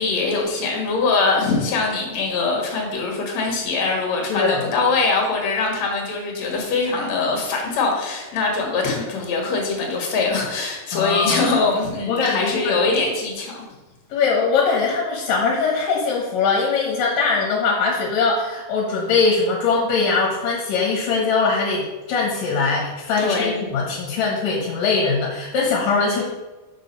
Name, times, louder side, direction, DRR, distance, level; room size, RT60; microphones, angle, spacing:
voice 1, 0.0-13.6 23.2-23.6, left 3 dB, 55° left, 0 dB, 2.6 m, -22 dB
voice 2, 4.3-4.6 10.9-11.5 12.1-12.8 14.1-26.2, left 4 dB, 70° left, -2 dB, 2.6 m, -21 dB
6.2 x 6.1 x 5.4 m, 1.1 s
omnidirectional pair, 4.4 m